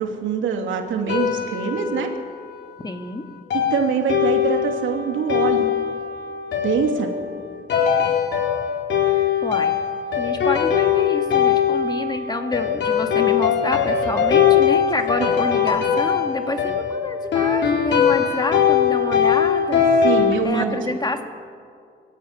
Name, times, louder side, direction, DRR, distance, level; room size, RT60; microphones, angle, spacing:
voice 1, 0.0-2.1 3.5-5.6 6.6-7.1 15.2-15.3 20.0-20.8, right 6 dB, 75° right, 4 dB, 2.6 m, -24 dB
sound 1, 1.1-2.6 3.5-20.3, left 8 dB, 65° left, 4.1 m, -21 dB
voice 2, 2.8-3.3 9.0-9.8 10.2-20.1 20.4-21.2, left 2 dB, 20° left, 6 dB, 1.9 m, -28 dB
21.0 x 15.0 x 9.6 m, 2.3 s
cardioid pair, 90°, 20 cm